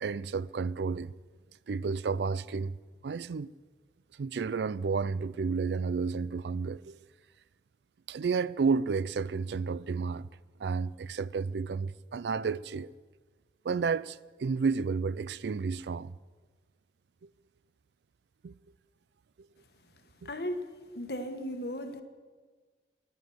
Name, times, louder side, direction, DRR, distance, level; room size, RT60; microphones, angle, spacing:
voice 1, 0.0-1.1 1.7-2.8 3.0-3.5 4.2-7.0 8.1-10.3 10.6-12.9 13.6-16.1 18.4-18.5 20.2-20.3, right 5 dB, 70° right, 0.4 m, -31 dB
voice 2, 20.2-20.7 20.9-22.0, equal, 60° left, 1.3 m, -36 dB
14.5 x 11.5 x 7.7 m
head